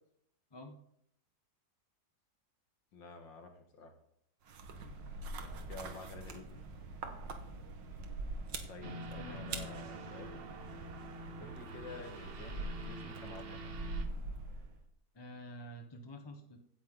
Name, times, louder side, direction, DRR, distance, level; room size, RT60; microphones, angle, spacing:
voice 1, 2.9-3.9 5.7-6.5 8.7-10.4 11.3-13.6, left 3 dB, 85° left, 4 dB, 2.4 m, -50 dB
sound 1, 4.5-14.8, right 2 dB, 80° right, 2.0 m, -44 dB
sound 2, 8.8-14.0, right 1 dB, 40° right, 1.0 m, -47 dB
voice 2, 9.2-9.7 15.1-16.6, equal, 20° left, 4 dB, 0.8 m, -49 dB
16.0 x 10.0 x 3.9 m, 0.73 s
omnidirectional pair, 2.0 m